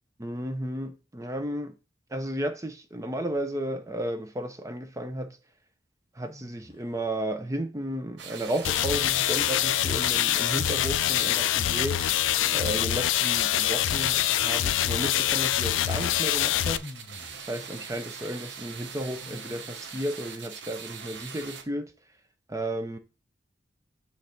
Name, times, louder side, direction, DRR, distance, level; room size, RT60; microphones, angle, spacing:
voice 1, 0.2-1.7 2.1-5.4 6.1-12.0 12.5-16.8 17.5-21.9 22.5-23.0, right 1 dB, 15° right, 0.5 m, -33 dB
sound 1, 6.2-7.4 9.1-10.3 12.0-14.0 15.8-15.9 16.8-20.1, left 2 dB, 30° left, 0.7 m, -52 dB
sound 2, 8.2-21.6, right 6 dB, 75° right, 1.0 m, -42 dB
sound 3, 8.6-16.8, left 13 dB, 90° left, 0.3 m, -25 dB
6.4 x 3.3 x 5.7 m
head